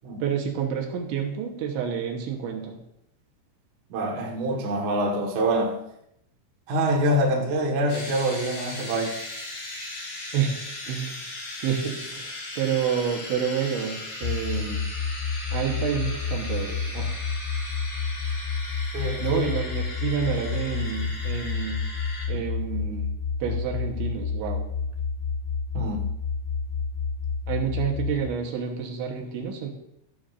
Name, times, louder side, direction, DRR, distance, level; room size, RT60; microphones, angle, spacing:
voice 1, 0.2-2.8 10.3-10.6 10.9-11.2 11.6-14.9 15.5-17.2 19.2-21.8 22.3-23.1 23.4-24.7 27.5-29.7, right 7 dB, 75° right, 1 dB, 3.3 m, -29 dB
voice 2, 3.9-5.8 6.7-9.2 18.9-19.4 25.7-26.1, right 1 dB, 60° right, -2 dB, 2.1 m, -25 dB
sound 1, 7.9-22.3, left 2 dB, 60° left, 5.9 m, -38 dB
sound 2, 14.2-28.2, left 5 dB, 85° left, 3.6 m, -29 dB
13.0 x 12.0 x 2.6 m, 0.79 s
omnidirectional pair, 5.7 m